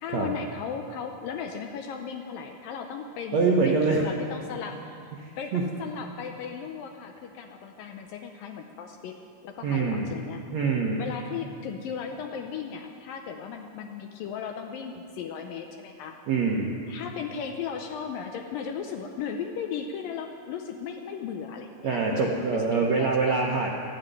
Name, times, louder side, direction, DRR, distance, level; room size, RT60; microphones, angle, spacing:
voice 1, 0.0-3.4 3.7-9.1 9.4-10.4 11.0-16.1 16.9-23.3, left 7 dB, 80° left, 4 dB, 2.2 m, -36 dB
voice 2, 3.3-4.0 5.2-5.6 9.6-10.2 10.5-11.1 16.3-16.7 21.8-23.7, right 4 dB, 70° right, -1 dB, 1.6 m, -25 dB
13.5 x 9.6 x 9.3 m, 2.4 s
omnidirectional pair, 4.6 m